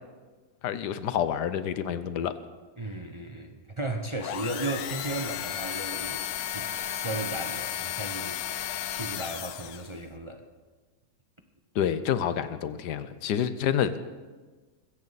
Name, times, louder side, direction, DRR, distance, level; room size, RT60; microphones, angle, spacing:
voice 1, 0.6-2.3 11.7-14.0, left 9 dB, 90° left, 13 dB, 1.4 m, -28 dB
voice 2, 2.8-8.4 8.9-10.4, right 2 dB, 25° right, 5 dB, 0.7 m, -35 dB
sound 1, 4.2-10.0, left 11 dB, 70° left, 1.1 m, -34 dB
21.5 x 16.0 x 4.1 m, 1.3 s
omnidirectional pair, 1.7 m